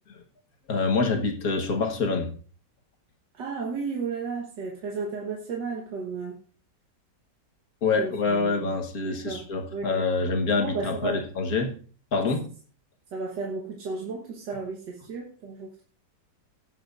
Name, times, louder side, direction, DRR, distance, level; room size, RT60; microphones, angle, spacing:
voice 1, 0.7-2.3 7.8-11.7 12.1-12.5, left 4 dB, 60° left, 4 dB, 1.8 m, -26 dB
voice 2, 3.3-6.4 8.0-8.7 9.0-9.9 10.6-11.2 13.1-15.8, right 4 dB, 80° right, -1 dB, 2.0 m, -34 dB
17.5 x 7.7 x 2.6 m, 0.42 s
omnidirectional pair, 1.9 m